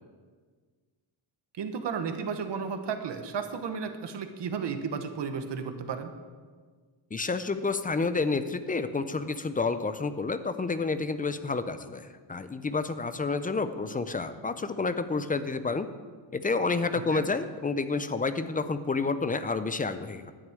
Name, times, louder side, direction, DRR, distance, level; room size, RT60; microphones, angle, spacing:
voice 1, 1.6-6.1 17.1-17.2, right 6 dB, 55° right, 7 dB, 1.1 m, -33 dB
voice 2, 7.1-15.9 16.3-20.3, left 4 dB, 20° left, 11 dB, 0.3 m, -29 dB
11.0 x 6.1 x 8.9 m, 1.5 s
wide cardioid pair, 175°, 50 cm